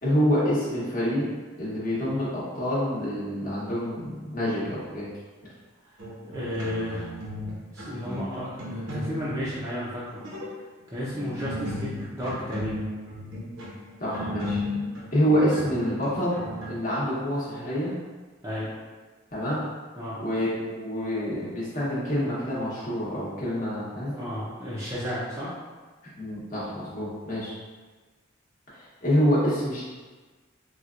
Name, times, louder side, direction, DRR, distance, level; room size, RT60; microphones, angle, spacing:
voice 1, 0.0-1.3 1.6-5.1 14.0-14.6 15.1-16.4 16.6-17.9 19.3-19.6 20.2-24.1 26.2-27.5 28.7-29.8, equal, 40° left, -9 dB, 1.1 m, -27 dB
sound 1, 6.0-7.5 7.8-9.6 10.1-10.5 11.1-16.7, left 1 dB, 80° right, 0.9 m, -35 dB
voice 2, 6.2-7.1 7.7-10.2 10.9-12.8 18.4-18.7 20.0-20.2 24.1-25.5, left 1 dB, 15° right, -10 dB, 0.6 m, -33 dB
4.3 x 2.3 x 2.5 m, 1.3 s
head